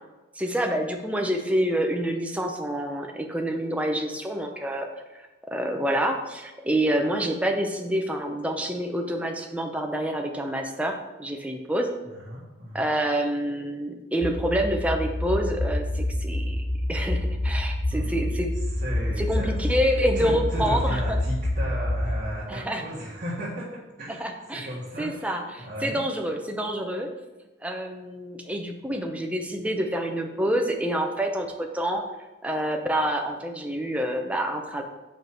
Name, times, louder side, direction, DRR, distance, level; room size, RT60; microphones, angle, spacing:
voice 1, 0.4-4.9 5.1-11.9 12.7-16.6 16.9-18.5 19.2-21.2 22.5-22.8 24.2-24.7 25.0-27.1 27.6-32.0 32.4-34.8, right 1 dB, 5° right, 3 dB, 0.6 m, -27 dB
voice 2, 12.0-12.9 17.9-18.3 18.5-23.7 24.0-26.0, equal, 40° right, -7 dB, 1.5 m, -35 dB
sound 1, 14.2-22.2, left 1 dB, 20° left, 0.9 m, -27 dB
5.2 x 4.6 x 6.0 m, 1.1 s
head